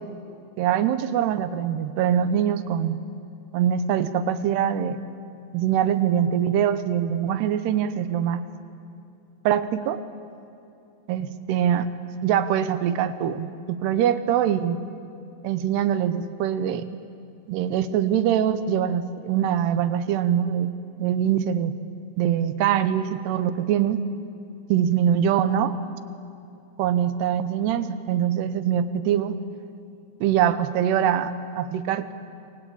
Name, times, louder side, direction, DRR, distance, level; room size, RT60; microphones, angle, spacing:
voice 1, 0.6-3.0 3.5-5.0 5.5-8.4 9.5-10.0 11.1-11.9 12.2-14.8 15.4-16.9 17.5-20.7 21.0-21.7 22.2-24.0 24.7-25.7 26.8-29.4 30.2-32.1, right 9 dB, 75° right, 12 dB, 2.8 m, -23 dB
27.5 x 24.5 x 8.7 m, 2.7 s
omnidirectional pair, 5.2 m